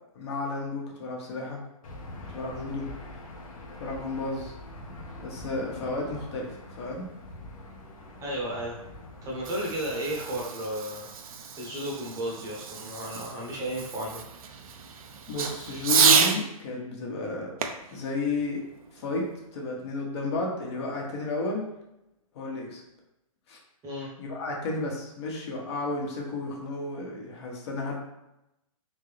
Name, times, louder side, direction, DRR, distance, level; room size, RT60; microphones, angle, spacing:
voice 1, 0.1-1.6 2.3-2.9 3.8-4.5 5.2-7.1 15.3-17.5 17.9-18.6 18.9-19.3 19.5-21.7 22.3-22.8 23.5-23.6 24.2-27.9, left 2 dB, 45° left, -1 dB, 1.2 m, -32 dB
Aircraft / Engine, 1.8-10.4, left 1 dB, 70° left, 1.1 m, -44 dB
voice 2, 8.2-8.8 9.2-11.1 11.6-14.2 23.8-24.1, right 1 dB, 15° right, -4 dB, 0.9 m, -33 dB
Fireworks, 9.2-16.4 17.6-19.2, right 6 dB, 70° right, 0.6 m, -29 dB
3.8 x 3.6 x 3.3 m, 0.88 s
hypercardioid pair, 150°, 19 cm